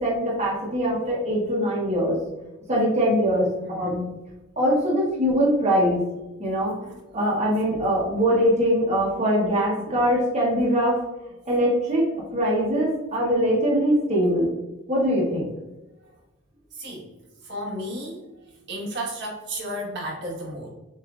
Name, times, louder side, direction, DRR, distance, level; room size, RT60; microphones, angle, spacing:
voice 1, 0.0-2.2 2.7-4.0 4.6-6.0 6.4-11.0 11.5-14.5 14.9-15.5, equal, 30° right, -6 dB, 1.0 m, -22 dB
voice 2, 3.6-3.9 9.8-10.0 16.7-17.1 17.4-18.3 18.7-20.7, equal, 55° right, -3 dB, 1.3 m, -33 dB
7.3 x 2.5 x 2.3 m, 1.0 s
head